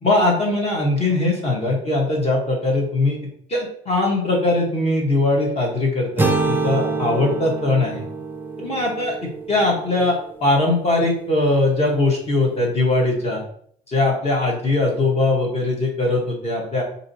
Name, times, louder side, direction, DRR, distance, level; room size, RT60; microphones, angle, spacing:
voice 1, 0.0-3.2 3.5-8.1 8.6-13.4 13.9-16.8, left 2 dB, 40° left, 0 dB, 1.4 m, -20 dB
sound 1, 6.2-10.2, right 3 dB, 10° right, 0.5 m, -26 dB
4.7 x 2.8 x 2.9 m, 0.63 s
cardioid pair, 110°, 17 cm